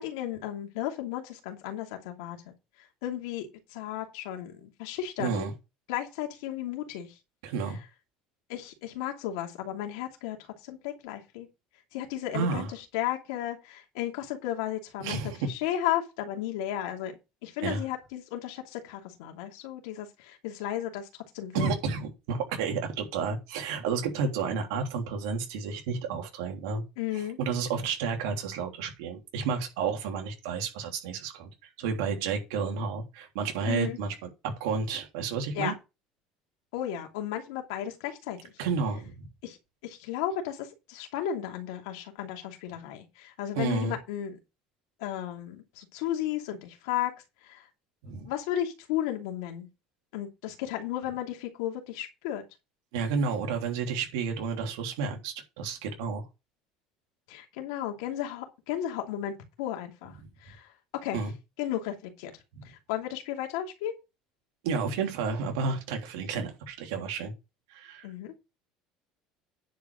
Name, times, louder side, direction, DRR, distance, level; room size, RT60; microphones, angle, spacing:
voice 1, 0.0-2.5 3.0-5.5 5.9-7.2 8.5-10.4 10.6-11.5 11.9-15.2 15.5-17.1 17.4-21.1 21.3-21.7 27.0-27.4 33.7-34.0 35.5-35.7 36.7-38.5 39.4-39.6 39.8-44.4 45.0-47.1 47.4-47.7 48.1-49.7 50.1-52.4 57.3-60.1 60.4-60.7 61.0-61.2 61.6-62.3 62.6-63.9 68.0-68.3, left 11 dB, 85° left, 2.6 m, -34 dB
voice 2, 5.2-5.5 7.4-7.8 12.3-12.7 15.0-15.5 17.6-17.8 21.5-26.8 27.1-31.5 31.8-34.3 34.6-35.7 38.6-39.3 43.5-43.9 48.0-48.3 52.9-56.3 61.1-61.3 62.6-62.7 64.6-67.3 67.7-68.1, right 5 dB, 85° right, 3.2 m, -31 dB
10.0 x 5.2 x 6.3 m
supercardioid pair, 100°, 2 cm